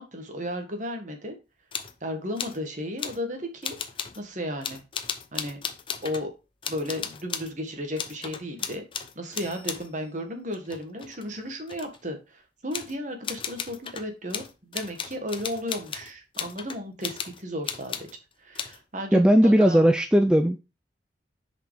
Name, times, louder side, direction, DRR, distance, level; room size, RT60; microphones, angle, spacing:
voice 1, 0.0-1.3 2.0-3.8 4.1-4.8 5.3-5.6 6.0-6.3 6.7-8.8 9.1-18.1 18.4-19.8, equal, 40° right, 1.7 m, -34 dB
sound 1, 1.7-2.0 2.4-2.6 3.0-3.2 3.6-4.2 4.6-6.3 6.6-7.6 8.0-9.9 10.5-12.0 12.7-13.0 13.2-18.2 18.6-18.8, left 7 dB, 25° left, 0.7 m, -35 dB
voice 2, 19.1-20.6, equal, 5° right, 0.3 m, -18 dB
6.6 x 5.1 x 4.8 m
head